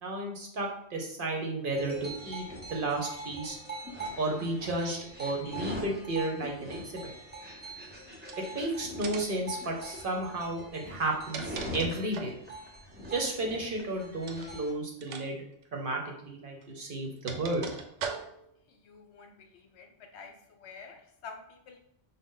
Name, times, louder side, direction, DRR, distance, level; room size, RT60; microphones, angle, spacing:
voice 1, 0.0-2.4 2.7-3.6 4.2-7.1 8.5-12.3 13.1-15.4 15.7-17.7, right 2 dB, 55° right, 1 dB, 0.8 m, -33 dB
sound 1, 1.7-14.7, right 1 dB, 10° right, 0.6 m, -42 dB
sound 2, 8.2-8.6 9.0-9.4 10.9-12.4 14.2-14.5 15.0-15.3 15.5-15.6 16.6-18.6, right 5 dB, 85° right, 0.9 m, -40 dB
voice 2, 18.8-19.9 20.1-21.8, left 5 dB, 70° left, 3 dB, 0.9 m, -48 dB
5.1 x 2.1 x 3.7 m, 0.73 s
omnidirectional pair, 1.2 m